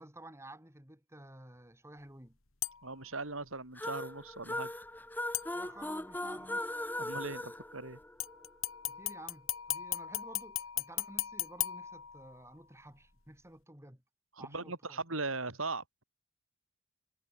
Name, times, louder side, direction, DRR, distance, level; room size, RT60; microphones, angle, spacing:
voice 1, 0.0-2.4 5.5-6.8 8.9-14.0 14.4-15.0, right 1 dB, 15° right, 5.6 m, -52 dB
sound 1, 2.6-3.0 5.3-6.0 8.2-12.6 13.0-13.1, left 14 dB, 80° left, 2.8 m, -38 dB
voice 2, 2.8-4.7 7.0-8.0 14.4-15.8, right 3 dB, 80° right, 5.4 m, -39 dB
sound 2, 3.8-8.5, left 1 dB, 10° left, 1.7 m, -39 dB
head